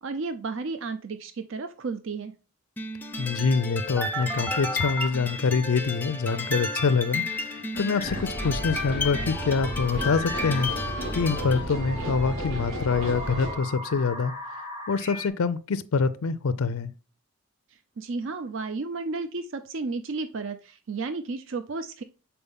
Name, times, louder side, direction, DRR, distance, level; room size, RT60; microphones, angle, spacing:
voice 1, 0.0-2.3 18.0-22.0, right 3 dB, 60° right, 0.5 m, -33 dB
sound 1, 2.8-11.6, left 3 dB, 10° left, 0.5 m, -33 dB
voice 2, 3.2-10.7 11.1-14.3 14.9-16.9, left 4 dB, 85° left, 0.5 m, -25 dB
sound 2, 3.9-5.2 7.7-8.2 8.7-10.8 11.7-15.3, equal, 10° right, 0.9 m, -38 dB
sound 3, 8.0-13.5, equal, 75° right, 2.9 m, -32 dB
6.8 x 4.4 x 3.6 m
head